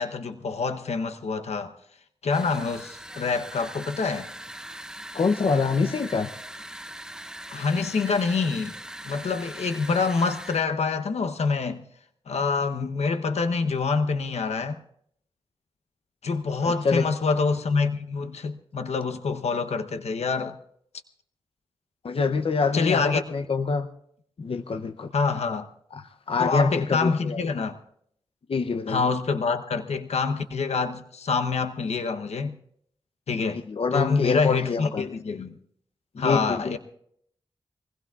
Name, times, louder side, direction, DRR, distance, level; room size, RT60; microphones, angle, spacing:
voice 1, 0.0-1.7 2.2-4.3 7.5-8.8 9.0-11.8 12.3-14.8 16.2-20.6 22.7-23.2 25.1-25.7 26.4-27.8 28.9-32.5 33.3-33.6 33.9-35.6 36.2-36.8, left 4 dB, 90° left, 0.9 m, -26 dB
sound 1, 2.3-10.7, right 1 dB, 5° right, 0.5 m, -41 dB
voice 2, 5.1-6.3 16.6-17.1 22.0-23.9 24.4-25.1 25.9-27.4 28.5-29.0 33.7-35.1 36.1-36.7, left 4 dB, 60° left, 0.7 m, -25 dB
25.0 x 20.0 x 2.4 m
wide cardioid pair, 80°, 11 cm